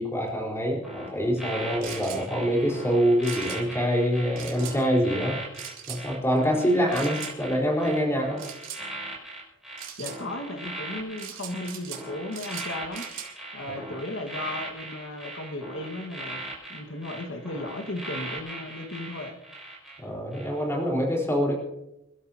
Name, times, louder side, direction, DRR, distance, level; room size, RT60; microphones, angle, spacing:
voice 1, 0.0-5.4 5.9-8.4 20.0-21.5, equal, 15° left, -1 dB, 4.2 m, -25 dB
sound 1, 0.8-20.0 20.3-20.6, right 1 dB, ahead, 5.9 m, -39 dB
sound 2, 1.8-2.2 3.2-3.6 4.4-4.8 5.5-6.0 6.9-7.3 8.4-8.8 9.8-10.2 11.2-12.0 12.3-13.3, right 10 dB, 75° right, 2.9 m, -40 dB
voice 2, 10.0-13.1 13.5-16.4 16.7-19.4, left 1 dB, 80° left, 4 dB, 1.7 m, -35 dB
28.0 x 12.5 x 2.9 m, 0.92 s
head